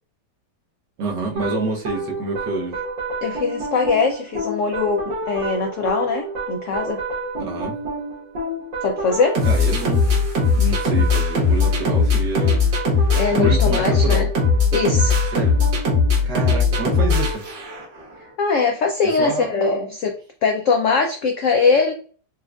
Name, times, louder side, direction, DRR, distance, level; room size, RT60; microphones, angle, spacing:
voice 1, 1.0-2.8 7.4-7.8 9.4-10.0 10.6-12.6 13.3-14.3 15.3-15.6 16.2-17.4 19.2-19.5, right 2 dB, 75° right, 1.6 m, -27 dB
sound 1, 1.4-18.0, left 3 dB, 90° right, 1.9 m, -21 dB
voice 2, 3.2-7.0 8.8-9.4 13.1-14.3 14.7-15.2 18.4-20.1 20.4-21.9, left 4 dB, 75° left, 0.7 m, -21 dB
4.4 x 2.4 x 2.4 m
omnidirectional pair, 1.9 m